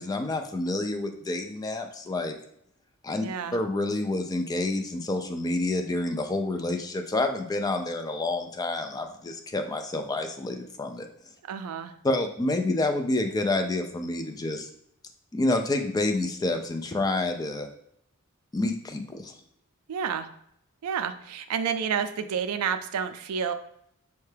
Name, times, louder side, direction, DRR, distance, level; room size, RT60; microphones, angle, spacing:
voice 1, 0.0-2.3 3.0-3.3 3.5-11.1 12.0-14.7 15.3-17.7 18.5-19.3, left 2 dB, 15° left, 5 dB, 0.3 m, -28 dB
voice 2, 3.2-3.6 11.5-11.9 19.9-20.3 20.8-23.5, right 7 dB, 90° right, 10 dB, 0.4 m, -30 dB
5.4 x 2.2 x 3.2 m, 0.73 s
head